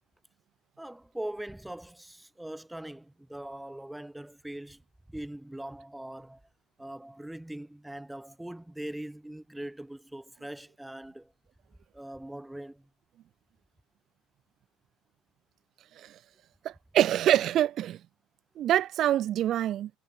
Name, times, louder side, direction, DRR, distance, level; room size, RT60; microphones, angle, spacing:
voice 1, 0.8-4.8 5.1-6.4 6.8-11.3 11.9-12.9, right 1 dB, 5° right, 3.8 m, -41 dB
voice 2, 16.6-18.0 18.6-19.9, right 12 dB, 45° right, 0.6 m, -25 dB
supercardioid pair, 125°, 0 cm